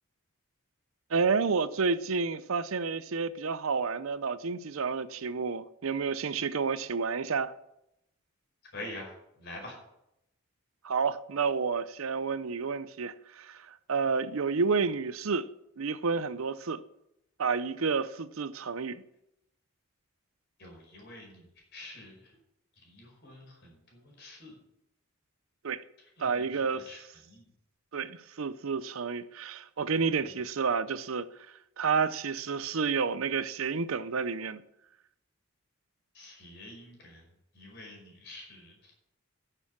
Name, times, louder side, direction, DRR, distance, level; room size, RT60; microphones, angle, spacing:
voice 1, 1.1-7.5 10.8-15.5 15.8-16.8 17.4-19.0 25.6-25.8 26.2-27.1 27.9-31.3 31.8-34.6, right 5 dB, 70° right, 0.6 m, -30 dB
voice 2, 8.7-9.1 9.4-9.8 20.6-21.4 21.7-22.2 22.8-24.5 26.2-26.5 26.7-27.0 27.3-27.4 36.1-37.2 37.5-38.9, left 1 dB, 50° left, 5.2 m, -46 dB
10.5 x 6.9 x 7.3 m
head